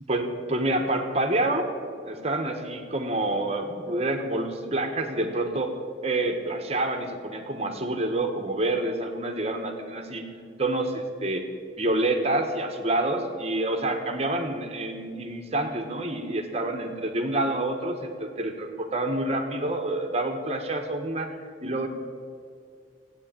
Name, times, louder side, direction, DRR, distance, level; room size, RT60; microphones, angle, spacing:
voice 1, 0.1-1.7 2.1-5.7 6.0-10.2 10.6-11.4 11.8-21.3 21.6-21.9, right 2 dB, 35° right, 5 dB, 1.3 m, -27 dB
15.5 x 9.0 x 8.9 m, 2.3 s
head